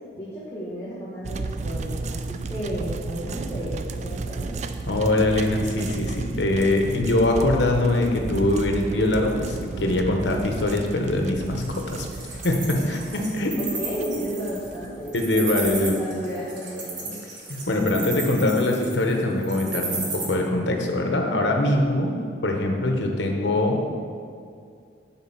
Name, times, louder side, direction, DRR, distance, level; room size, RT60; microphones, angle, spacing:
voice 1, 0.1-4.6 13.0-13.2 13.6-17.2, equal, 15° left, -10 dB, 1.3 m, -33 dB
sound 1, 1.2-15.9, right 3 dB, 40° right, 0.3 m, -33 dB
voice 2, 4.9-12.1 12.4-13.5 15.1-16.0 17.5-22.1 22.4-23.8, left 1 dB, 90° left, 2 dB, 1.0 m, -23 dB
Wild animals, 11.6-20.2, right 4 dB, 85° right, 1.8 m, -33 dB
8.4 x 4.1 x 5.7 m, 2.3 s
head